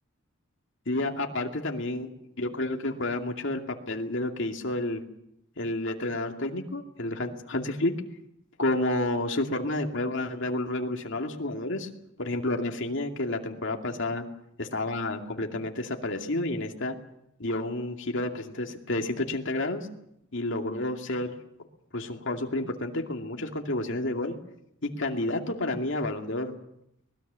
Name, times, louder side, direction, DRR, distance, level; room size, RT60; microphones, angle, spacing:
voice 1, 0.9-2.1 2.4-3.6 3.9-5.0 5.6-7.9 8.6-11.9 12.2-14.2 14.6-17.0 17.4-19.9 20.3-21.3 21.9-24.3 24.8-26.6, left 2 dB, 60° left, 3 dB, 2.5 m, -30 dB
24.0 x 20.5 x 6.9 m, 0.78 s
head